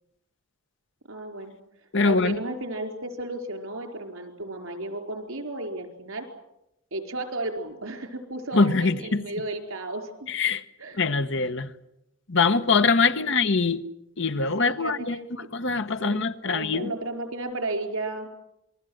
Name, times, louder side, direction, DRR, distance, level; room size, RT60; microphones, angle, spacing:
voice 1, 1.1-1.5 2.0-6.3 6.9-10.3 10.8-11.0 13.1-13.4 14.6-15.5 16.0-18.3, right 2 dB, 85° right, 4.5 m, -34 dB
voice 2, 1.9-2.4 8.5-9.2 10.3-10.6 11.0-11.7 12.3-13.8 14.2-15.2 15.5-16.9, left 4 dB, 60° left, 1.2 m, -23 dB
27.5 x 21.0 x 7.9 m
head